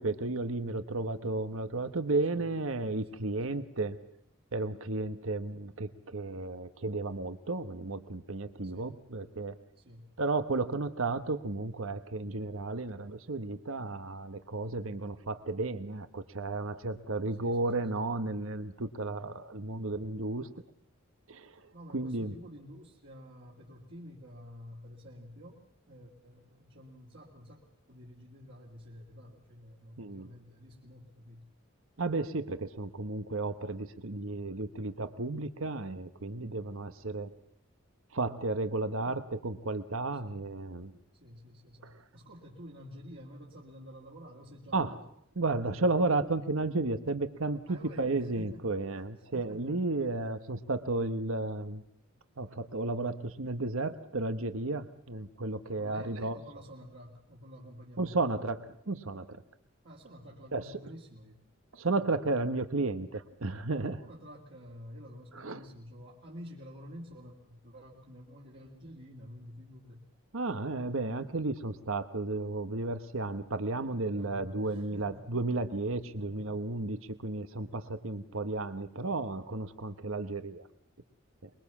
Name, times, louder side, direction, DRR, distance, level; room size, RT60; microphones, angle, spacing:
voice 1, 0.0-4.0 4.5-9.5 10.2-20.5 21.3-21.6 21.9-22.3 30.0-30.3 32.0-37.3 38.1-40.9 41.8-42.0 44.7-45.0 45.4-51.8 52.4-56.4 58.0-59.4 60.5-60.7 61.7-64.0 65.4-65.6 70.3-80.6 81.4-81.5, right 2 dB, 70° right, 11 dB, 1.2 m, -33 dB
voice 2, 3.0-3.6 8.6-9.0 9.8-10.1 17.4-17.9 19.2-19.3 21.7-25.6 25.9-31.5 34.3-34.5 40.2-40.4 41.1-45.0 45.3-45.4 47.7-48.7 49.0-50.0 55.6-58.2 59.8-61.5 61.8-62.1 64.0-70.0 74.1-75.3 76.1-76.6, equal, 50° right, -4 dB, 3.1 m, -50 dB
24.0 x 22.5 x 7.3 m, 0.71 s
head